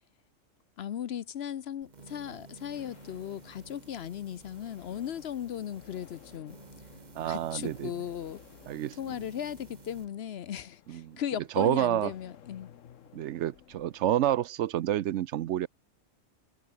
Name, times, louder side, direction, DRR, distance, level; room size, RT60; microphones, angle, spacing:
voice 1, 0.8-6.6 7.3-8.4 9.0-12.7, left 9 dB, 60° left, 0.9 m, -37 dB
sound 1, 1.8-10.1, right 4 dB, 35° right, 1.5 m, -53 dB
sound 2, 2.7-14.1, left 9 dB, 80° left, 1.3 m, -56 dB
voice 2, 7.1-7.9 8.7-9.0 10.9-11.2 11.5-12.1 13.1-15.7, right 12 dB, 70° right, 0.9 m, -29 dB
omnidirectional pair, 1.3 m